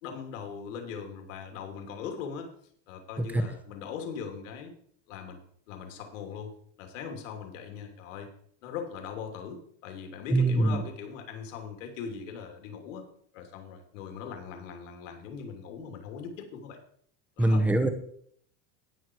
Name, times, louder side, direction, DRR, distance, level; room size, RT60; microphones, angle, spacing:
voice 1, 0.0-2.5 2.9-4.7 5.1-5.4 5.7-8.3 8.6-13.0 13.3-16.8 17.4-17.7, left 6 dB, 90° left, 4 dB, 2.9 m, -40 dB
voice 2, 10.3-10.8 17.4-17.9, right 2 dB, 5° right, 8 dB, 1.0 m, -23 dB
18.5 x 6.3 x 4.6 m, 0.63 s
supercardioid pair, 160°, 37 cm